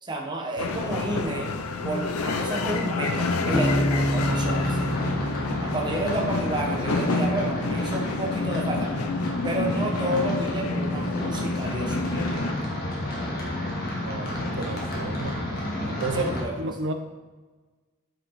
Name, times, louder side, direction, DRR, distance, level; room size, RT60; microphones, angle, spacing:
voice 1, 0.0-1.5 1.8-4.9 5.6-8.9 9.4-12.4 16.1-16.7, right 1 dB, 20° right, 0 dB, 1.0 m, -31 dB
sound 1, 0.6-12.5, left 3 dB, 85° left, 0.6 m, -28 dB
Bass guitar, 3.5-7.0, equal, 10° left, 0.5 m, -28 dB
sound 2, 4.1-16.4, left 1 dB, 45° left, 1.7 m, -32 dB
voice 2, 14.0-15.5 15.8-16.9, right 2 dB, 55° right, 7 dB, 0.7 m, -32 dB
8.4 x 5.2 x 4.1 m, 1.3 s
head